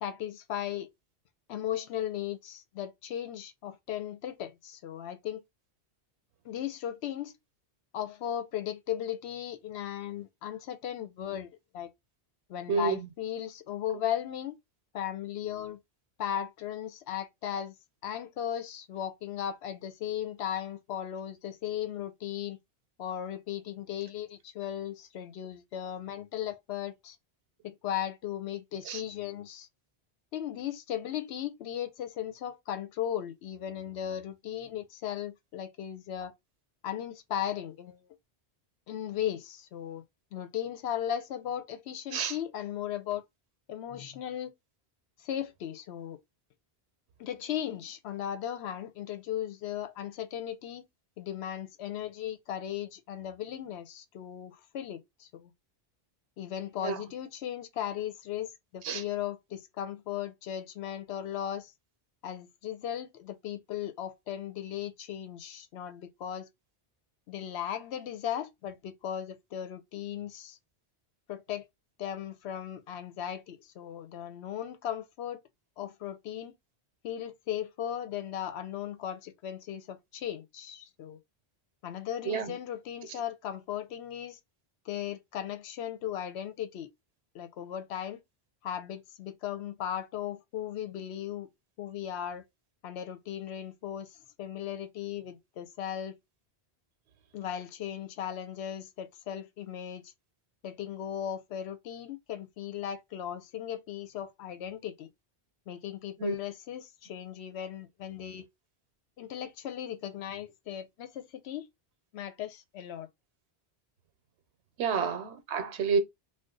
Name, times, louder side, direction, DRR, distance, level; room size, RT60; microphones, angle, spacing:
voice 1, 0.0-0.9 1.5-5.4 6.4-7.4 7.9-11.9 12.5-14.5 14.9-15.8 16.2-17.7 18.0-22.6 23.0-27.2 27.6-29.7 30.3-36.3 36.8-38.0 38.9-40.0 40.3-43.2 43.7-44.5 45.2-46.2 47.2-50.8 51.2-55.5 56.4-61.7 62.2-66.5 67.3-70.6 71.3-71.7 72.0-75.4 75.8-76.5 77.0-81.2 81.8-84.4 84.9-86.9 87.3-88.2 88.6-91.5 91.8-92.4 92.8-94.1 94.4-96.2 97.3-100.0 100.6-105.1 105.7-108.4 109.2-111.7 112.1-113.1 115.0-115.1, left 10 dB, 80° left, 0.8 m, -37 dB
voice 2, 12.7-13.1 28.9-29.0 42.1-42.3 56.8-57.0 58.8-59.0 82.3-82.6 106.2-106.3 114.8-116.0, right 5 dB, 90° right, 1.0 m, -29 dB
2.5 x 2.2 x 3.7 m
omnidirectional pair, 1.1 m